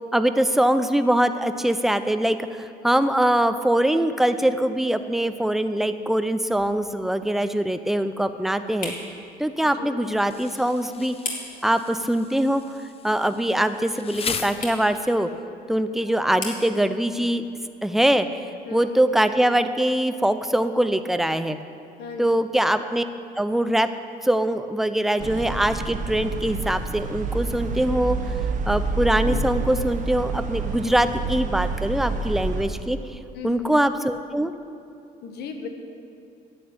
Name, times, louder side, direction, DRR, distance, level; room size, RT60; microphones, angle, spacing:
voice 1, 0.1-8.9 9.4-11.2 11.6-12.6 13.0-15.3 15.7-17.4 17.8-21.6 22.2-23.0 23.4-23.9 24.2-28.2 28.6-34.5, right 1 dB, ahead, 10 dB, 0.6 m, -23 dB
sound 1, 5.3-20.0, left 3 dB, 55° left, 2.7 m, -43 dB
Insect, 10.3-15.3, left 6 dB, 35° left, 0.8 m, -37 dB
voice 2, 22.0-22.4 33.3-33.7 35.2-35.7, left 5 dB, 75° left, 5 dB, 1.5 m, -36 dB
sound 2, 25.2-32.7, right 3 dB, 50° right, 1.1 m, -28 dB
11.0 x 8.3 x 8.8 m, 2.6 s
cardioid pair, 110°, 17 cm